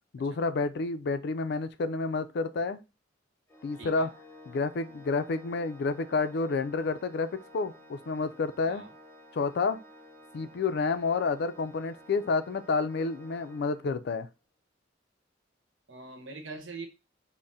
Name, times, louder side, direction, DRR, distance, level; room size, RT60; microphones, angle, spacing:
voice 1, 0.1-2.8 3.6-4.1 4.5-8.8 9.3-9.8 10.3-14.3, left 4 dB, 60° left, 0.4 m, -29 dB
Organ, 3.5-14.2, left 1 dB, 10° left, 0.7 m, -53 dB
voice 2, 3.8-4.1 8.7-8.9 15.9-16.9, right 3 dB, 75° right, 0.9 m, -42 dB
3.6 x 2.1 x 4.0 m
head